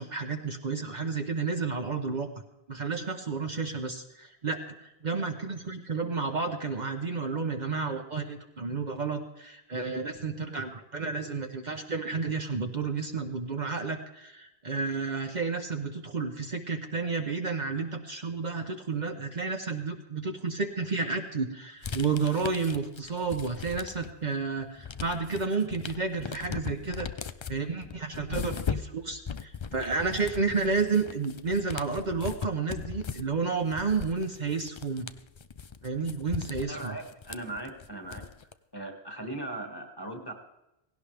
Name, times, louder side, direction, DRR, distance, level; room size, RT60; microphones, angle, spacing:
voice 1, 0.0-2.3 2.7-27.1 27.5-35.1 35.8-37.0, right 4 dB, 45° right, 4 dB, 1.0 m, -31 dB
sound 1, 21.8-24.3 24.6-38.5, left 6 dB, 40° left, 0.4 m, -39 dB
voice 2, 36.6-38.3 38.7-40.3, right 1 dB, 25° left, 3 dB, 2.1 m, -38 dB
17.5 x 17.0 x 3.4 m, 0.94 s
omnidirectional pair, 1.0 m